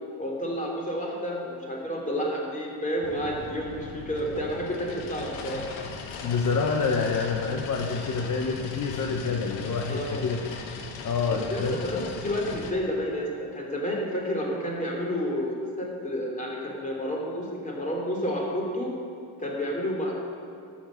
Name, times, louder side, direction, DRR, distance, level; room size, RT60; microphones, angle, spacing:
voice 1, 0.2-5.7 9.9-10.2 11.3-18.9 19.4-20.1, equal, 15° left, -2 dB, 3.0 m, -30 dB
sound 1, 3.0-12.7, left 4 dB, 85° left, 1.3 m, -39 dB
voice 2, 6.2-10.4 11.0-12.1, left 5 dB, 40° left, 2 dB, 1.0 m, -27 dB
12.0 x 7.5 x 6.4 m, 2.5 s
cardioid pair, 105°, 45 cm